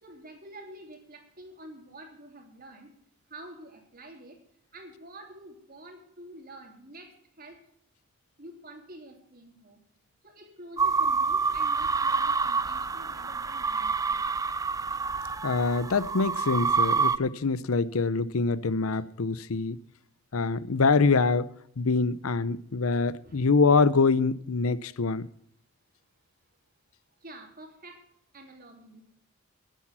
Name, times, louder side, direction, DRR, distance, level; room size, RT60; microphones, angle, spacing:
voice 1, 0.0-2.9 3.3-4.4 4.7-7.6 8.4-9.8 10.2-14.2 23.2-23.5 27.2-28.0 28.3-29.0, right 1 dB, 45° right, 3.1 m, -48 dB
sound 1, 10.8-17.2, right 5 dB, 15° right, 0.4 m, -27 dB
voice 2, 15.4-19.8 20.3-21.5 21.8-25.3, left 4 dB, 80° left, 0.7 m, -25 dB
11.0 x 10.0 x 7.4 m
head